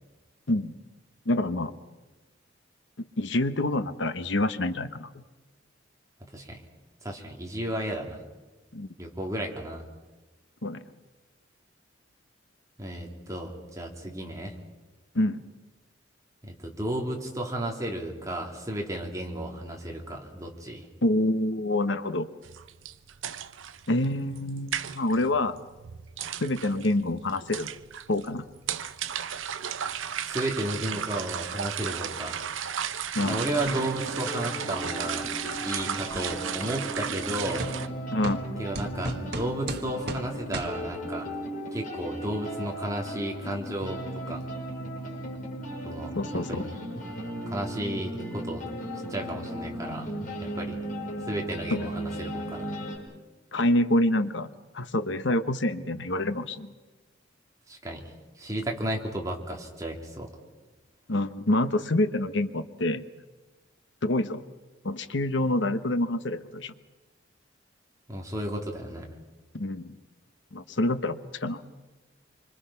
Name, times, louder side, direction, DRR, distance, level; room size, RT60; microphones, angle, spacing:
voice 1, 1.2-1.7 3.0-5.1 8.7-8.9 10.6-10.8 15.1-15.4 21.0-22.3 23.9-25.6 26.4-27.7 28.1-28.4 33.1-33.5 38.1-38.5 46.2-46.7 51.7-51.9 53.5-54.5 54.7-56.7 61.1-63.0 64.0-64.4 64.8-66.7 69.5-69.9 70.5-71.6, left 1 dB, 65° left, 11 dB, 1.1 m, -27 dB
voice 2, 7.0-8.2 9.0-9.8 12.8-14.5 16.4-20.9 30.2-32.4 33.2-35.3 35.5-37.7 38.6-41.3 41.7-44.0 44.3-44.4 45.8-46.7 47.5-48.6 49.1-50.1 50.4-50.8 51.3-52.7 57.7-60.3 68.1-69.1, right 1 dB, 15° right, 0 dB, 3.0 m, -33 dB
sound 1, 22.4-37.9, right 8 dB, 85° right, 0.8 m, -35 dB
sound 2, 33.1-53.0, right 1 dB, 45° left, 5.3 m, -36 dB
sound 3, 35.0-35.9 36.6-36.7 37.6-37.8 38.2-38.4 38.7-40.3 40.5-40.7, right 2 dB, 55° right, 1.6 m, -35 dB
27.0 x 25.0 x 5.8 m, 1.2 s
head